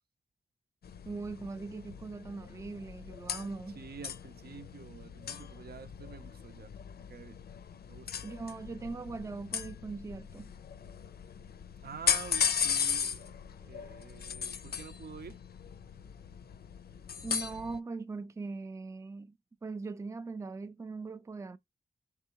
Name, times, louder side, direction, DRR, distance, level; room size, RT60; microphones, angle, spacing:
sound 1, 0.8-17.8, left 7 dB, 70° left, 0.5 m, -37 dB
voice 1, 1.0-3.8 8.2-10.5 10.9-11.0 17.2-19.4 19.6-21.6, right 4 dB, 20° right, 0.4 m, -40 dB
voice 2, 3.7-6.7 7.0-7.4 7.9-8.2 11.8-13.3 13.6-15.4, right 6 dB, 70° right, 0.6 m, -48 dB
4.5 x 3.6 x 2.9 m
cardioid pair, 70°, 17 cm